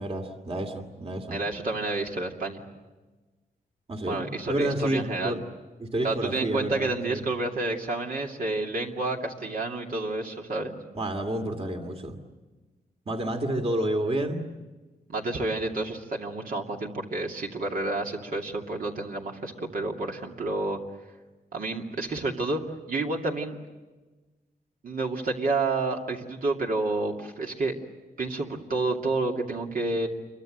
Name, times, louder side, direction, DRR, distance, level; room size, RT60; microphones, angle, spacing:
voice 1, 0.0-1.4 3.9-4.2 4.5-5.4 5.8-7.3 10.9-12.2 13.1-14.4, right 1 dB, 40° right, 5 dB, 2.5 m, -29 dB
voice 2, 1.3-2.6 4.1-5.4 6.0-10.8 15.1-20.8 21.5-22.6 22.9-23.6 24.8-27.7 28.2-30.1, right 2 dB, 65° right, 0 dB, 2.7 m, -29 dB
28.0 x 23.5 x 7.9 m, 1.2 s
wide cardioid pair, 120°, 16 cm